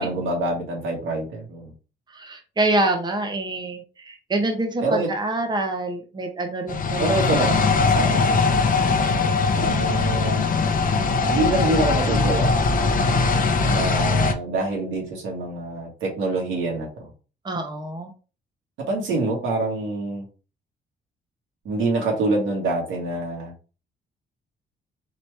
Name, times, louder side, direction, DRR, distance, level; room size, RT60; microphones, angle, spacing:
voice 1, 0.0-1.7 4.8-5.1 7.0-8.5 9.5-10.5 11.3-12.5 13.6-17.0 18.9-20.3 21.7-23.5, right 2 dB, 85° right, -1 dB, 1.9 m, -26 dB
voice 2, 2.2-7.3 8.9-9.1 17.4-18.1, right 2 dB, 20° right, 4 dB, 0.9 m, -26 dB
sound 1, 6.7-14.3, left 4 dB, 45° left, 0.7 m, -21 dB
4.3 x 3.0 x 3.3 m, 0.35 s
cardioid pair, 90°, 20 cm